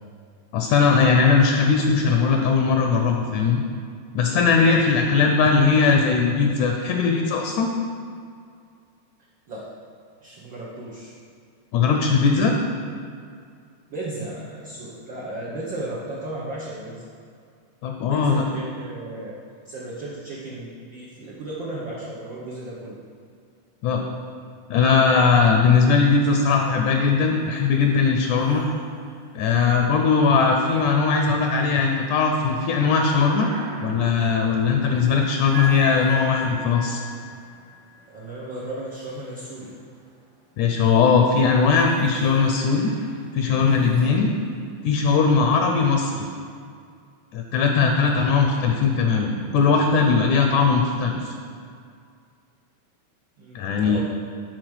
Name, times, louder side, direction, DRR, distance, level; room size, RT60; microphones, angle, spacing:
voice 1, 0.5-3.6 4.2-7.7 11.7-12.6 17.8-18.4 23.8-24.0 24.7-28.6 29.3-33.5 33.8-37.0 40.6-42.9 43.3-44.3 44.8-46.3 47.3-51.4 53.6-54.0, left 5 dB, 75° left, 3 dB, 1.9 m, -19 dB
voice 2, 10.2-11.2 13.9-17.0 18.0-23.0 38.1-39.7 44.0-44.2 50.2-50.4 53.4-54.0, right 1 dB, 75° right, -6 dB, 1.0 m, -35 dB
sound 1, 26.0-26.6 26.9-40.1 40.8-45.2, left 2 dB, 60° right, 2.6 m, -39 dB
8.9 x 4.5 x 6.3 m, 2.3 s
omnidirectional pair, 3.7 m